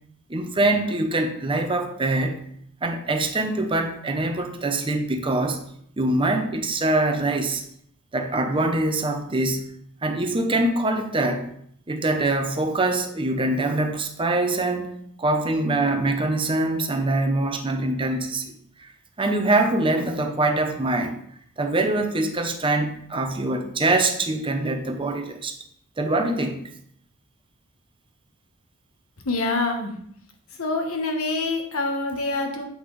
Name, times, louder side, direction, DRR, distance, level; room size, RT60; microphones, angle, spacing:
voice 1, 0.3-2.4 2.8-5.6 6.0-7.6 8.1-9.7 10.0-11.5 11.9-14.9 15.2-18.9 19.2-21.1 21.6-25.5 26.0-26.7, right 2 dB, 25° right, 5 dB, 0.8 m, -24 dB
voice 2, 29.2-29.9 30.6-32.7, left 3 dB, 85° left, 3 dB, 1.3 m, -26 dB
7.9 x 5.7 x 3.2 m, 0.68 s
head